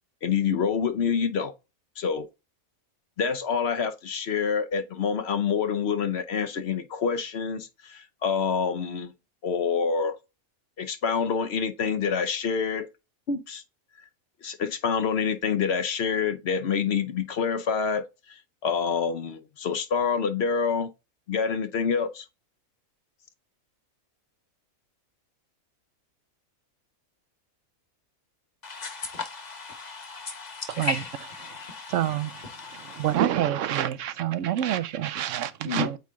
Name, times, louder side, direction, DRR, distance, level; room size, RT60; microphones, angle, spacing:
voice 1, 0.2-1.5 2.0-2.3 3.2-9.1 9.4-10.2 10.8-12.9 13.3-13.6 14.4-20.9 21.3-22.2 35.7-35.9, left 6 dB, 55° left, 0.9 m, -27 dB
voice 2, 28.6-33.2, left 4 dB, 30° left, 1.3 m, -37 dB
voice 3, 31.9-32.4 32.8-36.0, right 11 dB, 65° right, 0.9 m, -27 dB
8.3 x 3.2 x 3.6 m
omnidirectional pair, 1.5 m